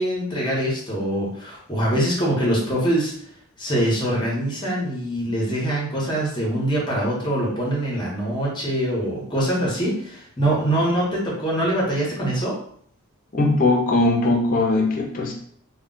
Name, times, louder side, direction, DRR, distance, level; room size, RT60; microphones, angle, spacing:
voice 1, 0.0-3.1 3.6-12.5, right 1 dB, 20° left, -4 dB, 0.9 m, -23 dB
voice 2, 13.3-15.3, left 2 dB, 40° left, 0 dB, 0.5 m, -20 dB
2.3 x 2.2 x 3.8 m, 0.62 s
head